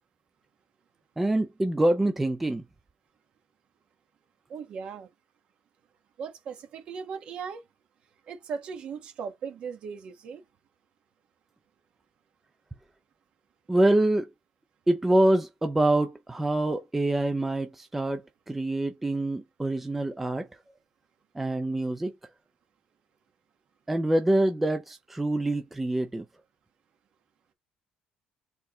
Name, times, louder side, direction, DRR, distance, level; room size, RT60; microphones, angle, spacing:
voice 1, 1.2-2.6 13.7-14.3 14.9-20.5 21.4-22.1 23.9-26.2, right 1 dB, 5° right, 0.5 m, -25 dB
voice 2, 4.5-5.1 6.2-7.6 8.3-10.4, right 6 dB, 45° right, 1.3 m, -38 dB
4.6 x 3.6 x 3.0 m
cardioid pair, 170°, 3 cm